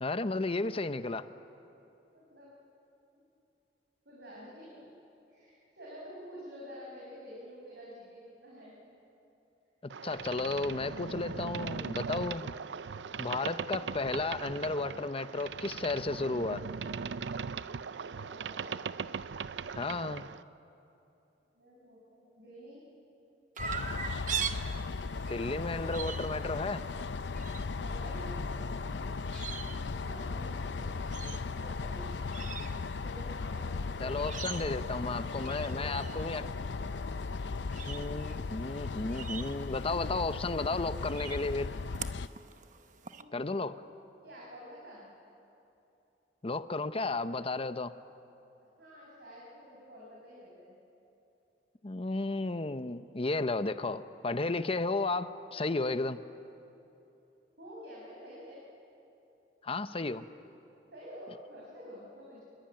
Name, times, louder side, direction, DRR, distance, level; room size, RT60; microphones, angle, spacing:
voice 1, 0.0-1.3 10.0-12.5 13.2-16.6 19.8-20.2 25.3-26.8 34.0-36.4 37.8-41.7 43.3-43.8 46.4-47.9 51.8-56.2 59.6-60.3, left 3 dB, 35° left, 11 dB, 0.8 m, -33 dB
voice 2, 2.1-2.5 4.0-4.9 5.3-8.7 10.0-10.8 11.2-12.4 17.9-18.8 21.5-22.8 27.7-32.4 33.0-34.5 35.6-36.3 43.1-43.7 44.2-45.1 48.8-50.8 57.6-58.6 60.9-62.4, equal, 70° right, -5 dB, 6.1 m, -50 dB
Boat Water vehicle, 9.9-20.4, right 6 dB, 85° right, 0.5 m, -39 dB
sound 1, 23.6-42.3, left 4 dB, 85° left, 0.6 m, -37 dB
Chirp tweet, 23.6-43.2, right 7 dB, 45° right, 1.0 m, -44 dB
27.0 x 22.5 x 9.0 m, 2.9 s
head